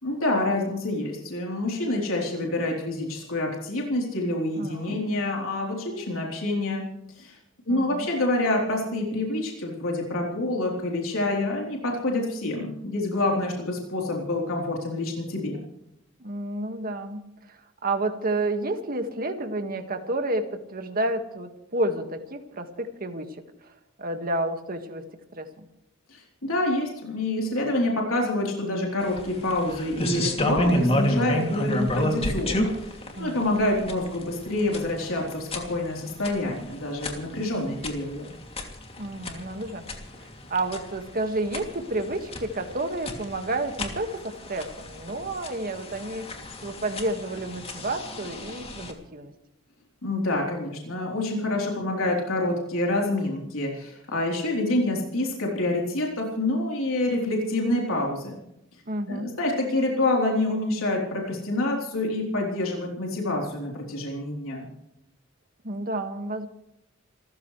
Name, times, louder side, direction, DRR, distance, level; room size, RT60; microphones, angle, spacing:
voice 1, 0.0-6.8 7.1-7.4 7.7-15.6 26.1-38.3 50.0-58.4 59.1-64.7, left 2 dB, 90° left, -1 dB, 3.8 m, -27 dB
voice 2, 4.6-5.0 7.7-8.1 16.2-17.2 17.5-23.3 23.6-23.7 24.0-25.0 25.4-25.5 33.2-33.6 39.0-39.8 40.5-46.3 46.6-49.3 58.9-59.3 65.6-66.5, right 2 dB, 45° right, 5 dB, 1.9 m, -30 dB
sound 1, 29.0-48.9, equal, 30° left, 2.8 m, -31 dB
27.5 x 14.5 x 3.3 m, 0.84 s
head